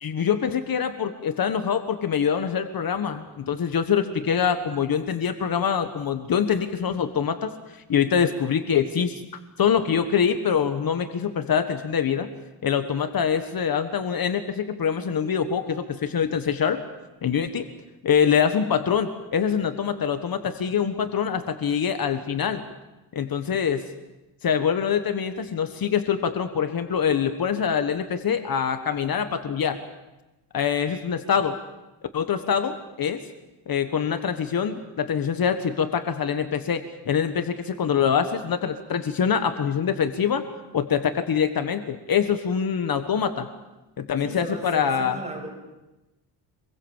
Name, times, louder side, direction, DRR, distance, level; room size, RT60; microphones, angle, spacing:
voice 1, 0.0-9.2 9.6-12.3 12.6-16.8 17.2-17.7 18.0-22.6 23.1-23.8 24.4-29.8 30.5-31.6 32.1-33.2 33.7-40.4 40.7-43.5 44.0-45.2, left 7 dB, 50° left, 8 dB, 1.5 m, -24 dB
voice 2, 44.2-45.5, right 1 dB, 15° right, 2 dB, 7.1 m, -36 dB
26.5 x 22.0 x 7.3 m, 1.0 s
cardioid pair, 125°, 45 cm